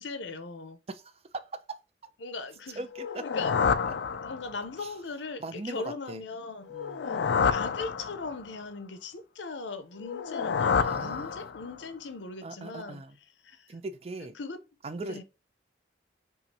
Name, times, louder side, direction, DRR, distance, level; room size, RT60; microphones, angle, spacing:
voice 1, 0.0-0.8 2.2-2.8 3.2-3.5 4.2-6.7 7.4-13.0 13.4-13.7 14.4-14.6 15.1-15.2, left 4 dB, 90° left, 0.8 m, -39 dB
voice 2, 0.9-1.8 2.8-3.2 4.8-4.9 5.4-6.2 6.7-7.5 10.8-11.3 12.4-13.2 13.7-14.4 14.8-15.2, right 2 dB, 35° right, 0.5 m, -40 dB
sound 1, 2.9-4.8 6.7-8.5 10.0-11.8, left 6 dB, 75° left, 0.4 m, -29 dB
5.6 x 2.6 x 2.8 m
head